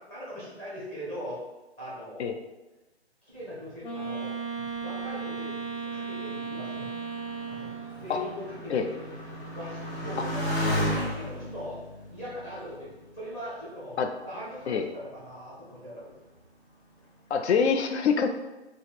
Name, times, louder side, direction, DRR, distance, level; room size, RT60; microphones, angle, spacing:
voice 1, 0.0-1.4 1.8-2.3 3.2-6.9 7.5-8.9 9.5-11.8 12.1-14.0 14.2-16.1, equal, 10° left, -9 dB, 0.5 m, -40 dB
Wind instrument woodwind instrument, 3.8-8.1, right 5 dB, 50° left, 1.2 m, -35 dB
Motorcycle, 4.7-13.7 14.5-15.1, left 1 dB, 25° left, 1.3 m, -35 dB
voice 2, 17.3-18.3, left 6 dB, 75° left, 6 dB, 0.5 m, -24 dB
3.5 x 2.0 x 4.1 m, 1.1 s
figure-of-eight pair, 145°, 33 cm